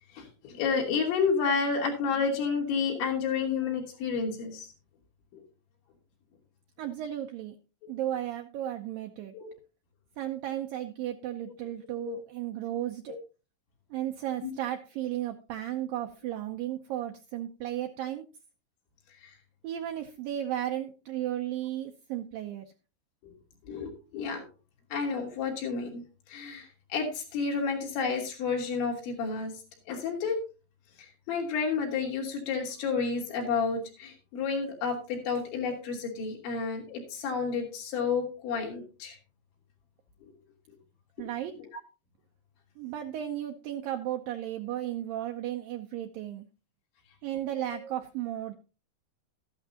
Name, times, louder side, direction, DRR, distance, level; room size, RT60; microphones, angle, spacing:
voice 1, 0.1-4.7 9.3-9.5 11.7-11.8 12.0-12.2 14.4-14.5 23.2-23.3 23.7-24.5 24.9-26.0 26.3-29.5 29.9-30.4 31.0-39.2 41.2-41.3 41.6-41.7 47.7-47.8, left 5 dB, 85° left, 0 dB, 5.2 m, -30 dB
voice 2, 6.8-7.6 7.9-9.3 10.2-13.2 13.9-18.3 19.6-22.7 41.2-41.5 42.8-46.5 47.2-48.5, right 12 dB, 90° right, 5 dB, 1.9 m, -34 dB
13.5 x 11.5 x 2.8 m, 0.33 s
omnidirectional pair, 5.1 m